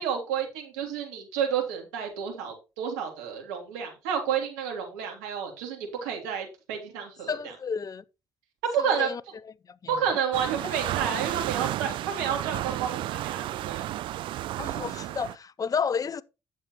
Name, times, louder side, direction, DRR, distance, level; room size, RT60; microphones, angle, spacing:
voice 1, 0.0-7.5 8.7-9.1 9.9-13.8, right 7 dB, 90° right, 3.2 m, -30 dB
voice 2, 7.3-8.0 8.8-9.2 9.8-10.0 10.6-10.7 14.6-16.2, left 6 dB, 45° left, 0.9 m, -31 dB
sound 1, 10.3-15.4, right 14 dB, 70° right, 0.5 m, -32 dB
11.0 x 7.9 x 3.1 m
hypercardioid pair, 55°, 9 cm